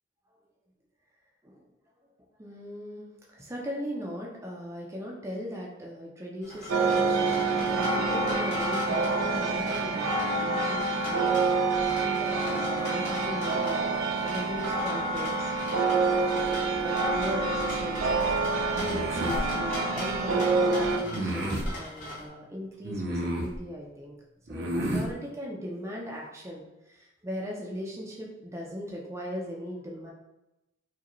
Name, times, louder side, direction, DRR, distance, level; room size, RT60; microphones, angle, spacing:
voice 1, 2.4-11.7 12.0-14.0 14.2-15.5 15.9-24.2 24.5-30.1, equal, 15° right, -2 dB, 0.5 m, -39 dB
sound 1, 6.4-22.3, left 1 dB, 40° left, 0.9 m, -41 dB
sound 2, 6.7-21.0, right 3 dB, 90° right, 0.5 m, -27 dB
sound 3, 18.7-19.5 21.0-21.7 22.8-23.6 24.5-25.1, right 1 dB, 55° right, 0.7 m, -31 dB
4.7 x 2.2 x 3.0 m, 0.94 s
head